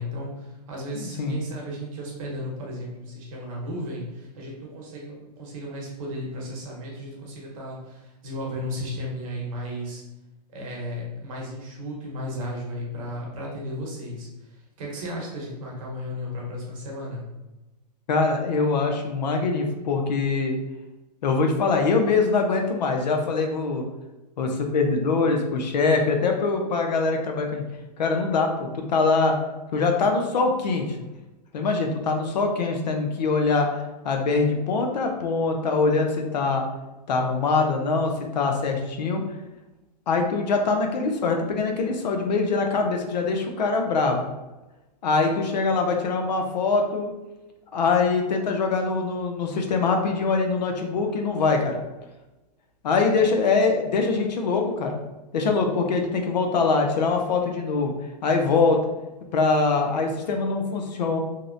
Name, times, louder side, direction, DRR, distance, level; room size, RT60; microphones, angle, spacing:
voice 1, 0.0-10.0 10.5-14.3 14.8-17.3, equal, 55° right, -3 dB, 1.0 m, -34 dB
voice 2, 0.9-1.4 18.1-20.6 21.2-23.9 24.4-27.6 28.0-29.4 29.7-30.9 31.5-36.6 37.1-39.2 40.1-44.3 45.0-47.1 47.7-51.8 52.8-55.0 55.3-57.9 58.2-58.8 59.3-61.2, left 4 dB, 85° left, 3 dB, 0.5 m, -23 dB
2.7 x 2.0 x 2.5 m, 1.0 s
hypercardioid pair, 145°, 21 cm